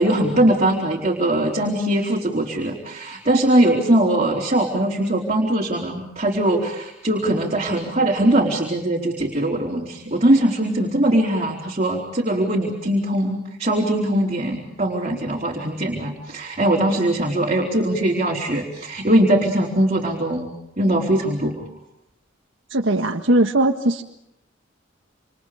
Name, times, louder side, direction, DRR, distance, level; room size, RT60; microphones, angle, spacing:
voice 1, 0.0-20.5 20.8-21.6, right 1 dB, 35° right, -2 dB, 4.2 m, -21 dB
voice 2, 22.7-24.0, right 1 dB, 75° right, 1 dB, 1.7 m, -19 dB
28.5 x 28.0 x 5.1 m, 0.80 s
head